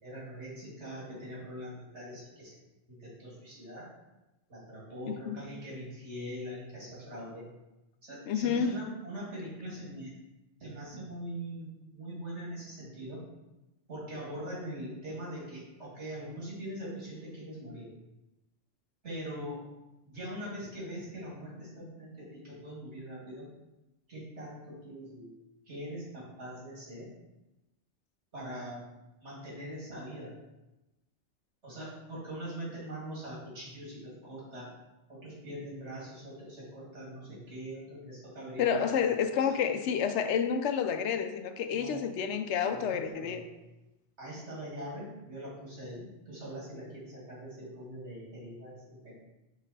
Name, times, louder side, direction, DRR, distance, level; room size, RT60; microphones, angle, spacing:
voice 1, 0.0-2.5 2.9-3.9 4.5-7.4 8.0-10.1 10.6-13.2 13.9-17.9 19.0-19.6 20.0-23.5 24.1-25.4 25.7-27.1 28.3-28.8 29.2-30.3 31.6-34.7 35.1-39.1 39.4-39.5 41.7-42.0 42.7-43.5 44.2-49.2, equal, 85° right, -6 dB, 2.6 m, -42 dB
voice 2, 5.1-5.4 8.3-8.7 38.6-43.4, left 7 dB, 90° left, 8 dB, 0.9 m, -29 dB
6.4 x 4.0 x 4.1 m, 1.0 s
omnidirectional pair, 1.1 m